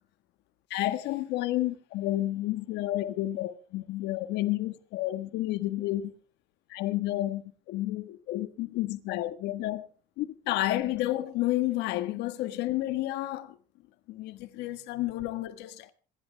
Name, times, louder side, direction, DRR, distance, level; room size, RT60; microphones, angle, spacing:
voice 1, 0.7-6.1 6.7-7.4 7.7-9.9 10.2-13.6 14.1-15.9, left 15 dB, 90° left, 1.6 m, -30 dB
26.5 x 11.5 x 3.5 m
cardioid pair, 110°, 17 cm